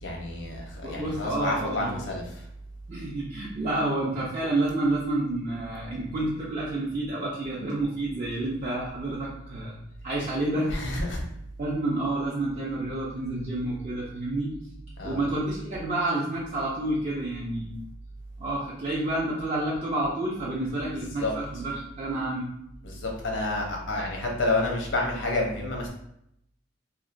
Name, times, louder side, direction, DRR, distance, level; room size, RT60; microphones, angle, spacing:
voice 1, 0.0-2.4 10.7-11.2 15.0-15.2 21.2-21.3 22.8-25.9, left 2 dB, 85° left, 0 dB, 0.7 m, -29 dB
voice 2, 0.8-2.0 2.9-9.8 10.0-11.0 11.6-14.5 15.0-17.8 18.4-22.5, right 2 dB, 40° right, -6 dB, 0.4 m, -29 dB
2.8 x 2.1 x 2.5 m, 0.75 s
head